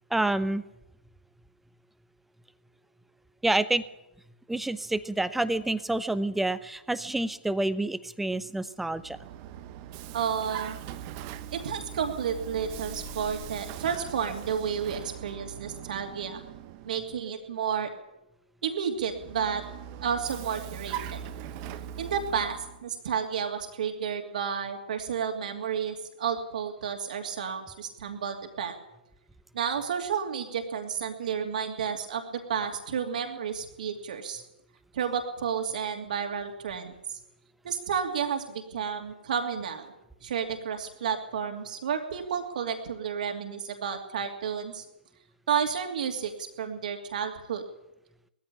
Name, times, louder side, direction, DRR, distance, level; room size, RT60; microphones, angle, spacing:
voice 1, 0.1-0.6 3.4-3.8 4.5-9.2, right 2 dB, 5° right, 14 dB, 0.9 m, -28 dB
Vehicle, 8.8-17.3 19.0-22.8, right 10 dB, 30° right, 1.2 m, -41 dB
voice 2, 10.1-10.8 11.5-16.4 16.8-17.9 18.6-19.6 20.0-21.2 22.0-28.7 29.5-34.4 34.9-37.2 37.6-39.9 40.2-44.8 45.5-46.3 46.6-47.6, right 7 dB, 50° right, 4 dB, 2.7 m, -31 dB
sound 1, 12.0-16.5, left 6 dB, 20° left, 4.1 m, -51 dB
20.0 x 14.5 x 10.0 m, 0.89 s
figure-of-eight pair, 125°, 5 cm